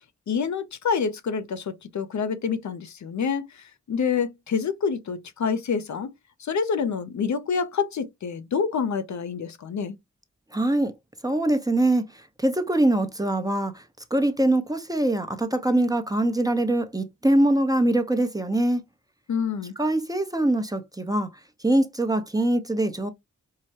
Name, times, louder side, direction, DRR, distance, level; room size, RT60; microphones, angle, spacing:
voice 1, 0.3-6.1 6.4-10.0 19.3-19.7, left 6 dB, 70° left, 0.6 m, -27 dB
voice 2, 10.5-10.9 11.2-12.0 12.4-13.8 14.1-18.8 19.8-21.3 21.6-23.1, right 1 dB, 10° right, 0.7 m, -23 dB
4.6 x 2.1 x 2.7 m
cardioid pair, 45°, 29 cm